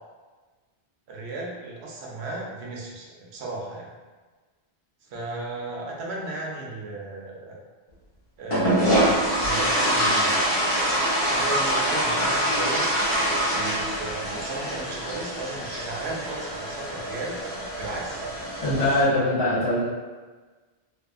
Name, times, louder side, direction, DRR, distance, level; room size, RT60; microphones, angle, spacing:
voice 1, 1.1-3.9 5.0-7.6 8.4-10.4 11.2-12.9 13.5-17.4 17.8-18.2, right 2 dB, 90° right, -2 dB, 0.9 m, -35 dB
sound 1, 8.5-19.0, equal, 35° left, 0.7 m, -25 dB
voice 2, 18.6-19.8, left 1 dB, 65° left, -9 dB, 1.2 m, -22 dB
2.5 x 2.3 x 2.3 m, 1.3 s
omnidirectional pair, 1.1 m